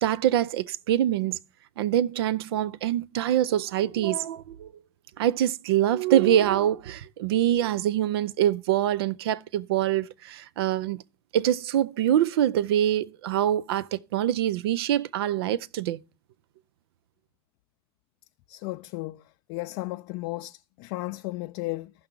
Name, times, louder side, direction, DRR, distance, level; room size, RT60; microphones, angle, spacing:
voice 1, 0.0-1.4 1.8-4.7 5.2-11.0 11.3-16.0, right 11 dB, 85° right, 0.5 m, -24 dB
voice 2, 18.5-19.2 19.5-21.9, left 20 dB, 65° left, 0.4 m, -34 dB
14.5 x 5.8 x 3.7 m
supercardioid pair, 105°, 13 cm